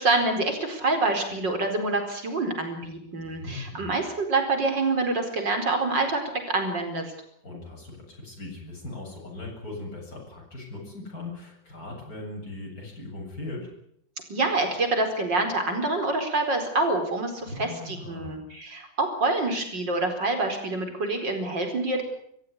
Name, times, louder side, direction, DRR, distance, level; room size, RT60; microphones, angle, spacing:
voice 1, 0.0-7.1 14.3-22.0, right 2 dB, 75° right, 5 dB, 5.3 m, -26 dB
voice 2, 3.2-4.0 7.4-13.7 17.4-18.3, left 2 dB, 50° left, -2 dB, 8.5 m, -39 dB
25.5 x 15.5 x 9.8 m, 0.71 s
omnidirectional pair, 2.0 m